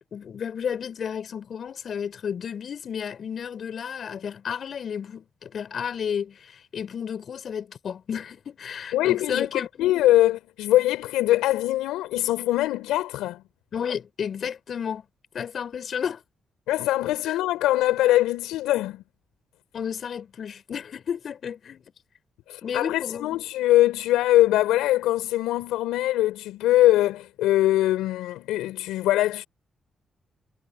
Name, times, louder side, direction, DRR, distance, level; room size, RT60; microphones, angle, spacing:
voice 1, 0.1-9.9 13.7-15.0 15.3-16.2 17.2-17.4 19.7-21.8 22.6-23.4, left 7 dB, 65° left, 6.6 m, -32 dB
voice 2, 8.9-13.4 16.7-19.0 22.5-29.5, left 15 dB, 85° left, 4.5 m, -22 dB
hypercardioid pair, 45°, 0 cm